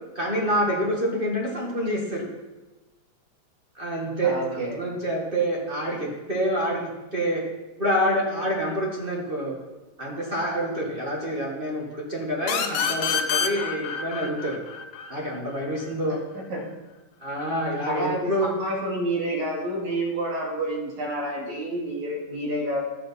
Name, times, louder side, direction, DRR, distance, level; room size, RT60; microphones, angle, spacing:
voice 1, 0.1-2.3 3.7-7.4 7.8-9.6 10.0-14.6 15.1-16.2 17.2-18.5, equal, 25° right, -2 dB, 1.2 m, -27 dB
voice 2, 4.2-4.8 16.3-16.6 17.9-22.8, right 1 dB, 70° right, -1 dB, 3.5 m, -29 dB
sound 1, 12.5-15.9, left 7 dB, 65° left, 2.0 m, -27 dB
12.0 x 7.7 x 5.6 m, 1.1 s
omnidirectional pair, 3.5 m